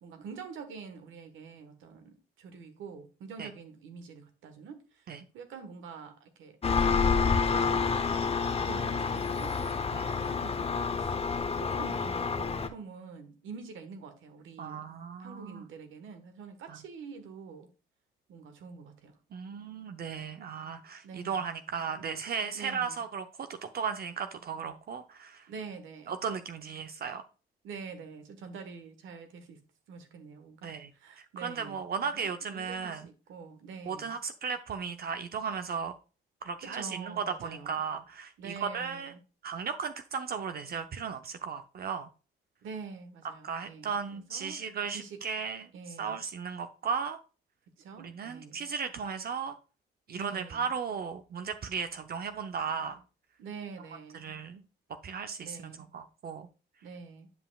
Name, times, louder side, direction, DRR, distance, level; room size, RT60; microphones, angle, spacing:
voice 1, 0.0-9.6 10.2-11.2 11.5-14.9 15.2-17.7 18.3-19.2 21.0-21.4 22.5-23.0 25.5-26.2 27.6-29.6 29.9-34.2 36.6-37.8 38.4-39.2 42.6-44.6 44.9-45.2 45.7-46.2 47.7-48.7 50.1-50.7 53.4-54.4 55.4-55.9 56.8-57.3, right 5 dB, 80° right, 1.4 m, -46 dB
Engine, 6.6-12.7, left 5 dB, 30° left, 0.9 m, -28 dB
voice 2, 14.6-15.7 16.7-16.8 19.3-25.5 26.1-27.2 30.6-30.9 31.2-33.1 33.9-35.9 36.4-39.1 39.4-42.1 43.4-45.7 46.0-47.2 48.0-49.6 50.1-53.0 54.1-54.6 55.0-56.5, right 6 dB, 50° right, 0.6 m, -36 dB
9.4 x 5.6 x 2.3 m
cardioid pair, 90°, 20 cm